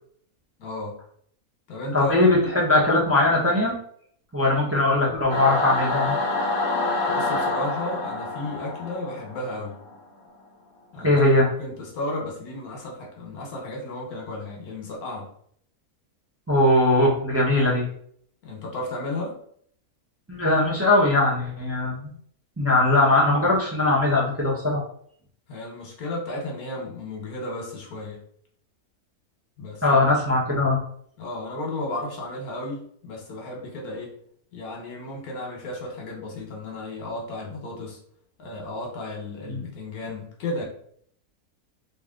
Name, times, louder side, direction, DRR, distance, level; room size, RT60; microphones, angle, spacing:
voice 1, 0.6-1.0 1.7-2.5 7.1-9.7 10.9-15.3 18.4-19.4 25.5-28.2 29.6-30.1 31.2-34.1 34.5-38.0 38.4-40.6, left 2 dB, 80° left, -1 dB, 1.5 m, -33 dB
voice 2, 1.9-3.7 4.3-6.1 11.0-11.5 16.5-17.8 20.3-22.1 22.6-24.8 29.8-30.8 39.5-39.6, left 2 dB, 15° right, -5 dB, 0.7 m, -20 dB
Singing / Musical instrument, 5.3-10.0, left 2 dB, 45° left, 0.8 m, -27 dB
3.2 x 2.7 x 3.6 m, 0.63 s
omnidirectional pair, 1.6 m